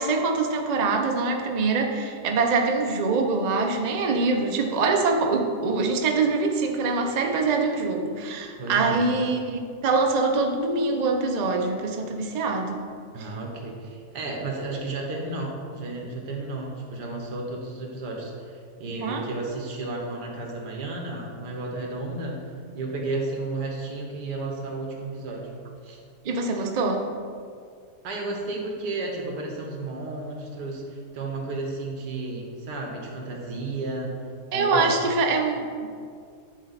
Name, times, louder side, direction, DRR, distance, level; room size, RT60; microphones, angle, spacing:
voice 1, 0.0-12.8 13.2-13.3 19.0-19.3 26.2-27.1 34.5-35.9, right 3 dB, 65° right, 3 dB, 0.4 m, -24 dB
voice 2, 8.6-9.1 13.1-22.4 22.8-25.5 25.8-26.0 28.0-34.2 34.5-35.0, right 2 dB, 90° right, 0 dB, 1.7 m, -33 dB
10.0 x 4.2 x 4.0 m, 2.2 s
omnidirectional pair, 1.7 m